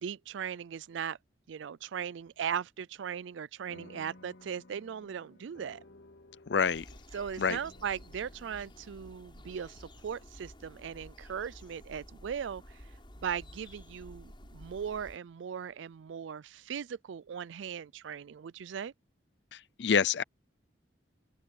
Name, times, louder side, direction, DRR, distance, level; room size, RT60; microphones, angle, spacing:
voice 1, 0.0-1.2 1.5-5.8 7.1-12.9 13.2-18.9, right 7 dB, 80° right, 0.4 m, -38 dB
sound 1, 3.7-12.4, left 1 dB, 80° left, 3.7 m, -58 dB
voice 2, 6.5-6.8 7.4-7.6 19.5-20.2, left 6 dB, 65° left, 0.5 m, -27 dB
sound 2, 6.6-15.2, left 1 dB, 25° left, 6.3 m, -52 dB
open air
head